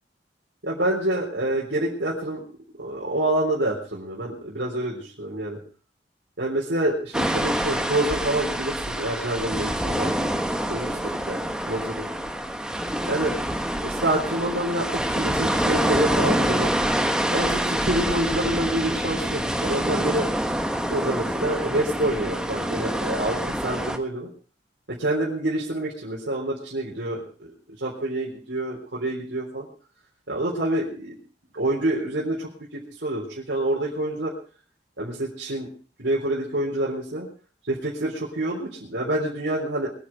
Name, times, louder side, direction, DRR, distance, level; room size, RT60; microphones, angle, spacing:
voice 1, 0.6-2.4 2.8-5.6 6.4-10.1 10.7-11.4 11.7-12.1 13.1-13.3 13.8-16.7 17.3-20.3 20.9-24.3 24.9-27.2 27.8-29.7 30.3-31.1 31.5-34.3 35.0-35.7 36.0-37.3 37.7-39.9, right 1 dB, 75° right, -5 dB, 3.9 m, -27 dB
sound 1, 7.1-24.0, right 1 dB, 5° right, 1.2 m, -26 dB
22.0 x 10.0 x 4.6 m, 0.40 s
head